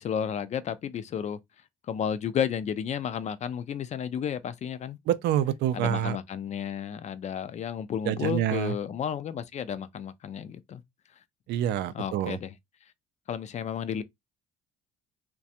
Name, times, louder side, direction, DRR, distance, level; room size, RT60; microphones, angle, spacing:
voice 1, 0.0-1.4 1.9-5.0 5.7-10.8 11.9-12.5 13.3-14.0, left 8 dB, 35° left, 0.4 m, -32 dB
voice 2, 5.1-6.2 8.1-8.7 11.5-12.4, right 11 dB, 60° right, 0.4 m, -27 dB
2.3 x 2.2 x 2.7 m
supercardioid pair, 75°, 19 cm